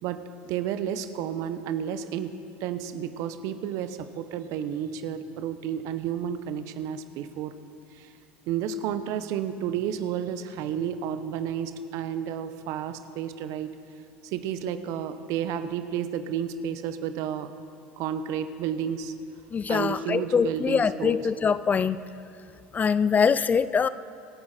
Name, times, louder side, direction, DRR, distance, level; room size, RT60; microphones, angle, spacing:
voice 1, 0.0-7.6 7.9-8.1 8.5-13.7 14.2-17.5 18.0-19.1 19.7-21.2, right 9 dB, 60° right, 11 dB, 0.9 m, -31 dB
voice 2, 19.5-22.0 22.7-23.9, left 6 dB, 25° left, 16 dB, 0.4 m, -23 dB
26.0 x 8.7 x 4.4 m, 2.6 s
hypercardioid pair, 90°, 6 cm